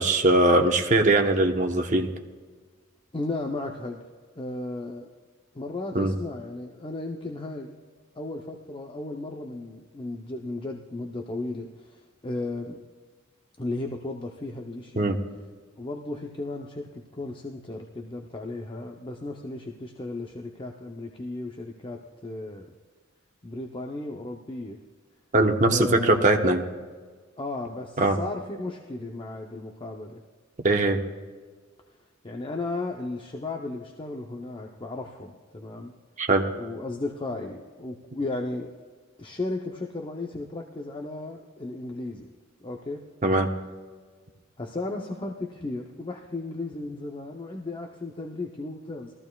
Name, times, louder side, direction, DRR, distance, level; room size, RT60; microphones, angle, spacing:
voice 1, 0.0-2.1 5.9-6.1 15.0-15.2 25.3-26.6 28.0-28.2 30.6-31.0 36.2-36.4 43.2-43.5, right 2 dB, 40° right, 3 dB, 1.1 m, -21 dB
voice 2, 3.1-4.0 4.4-5.1 5.5-7.7 8.1-12.8 13.6-15.2 15.8-22.7 23.4-24.8 25.7-26.5 27.4-30.2 32.2-35.9 36.6-38.7 39.2-42.3 42.6-43.0 44.6-49.1, left 2 dB, 25° left, 2 dB, 0.7 m, -35 dB
20.5 x 14.5 x 2.3 m, 1.5 s
head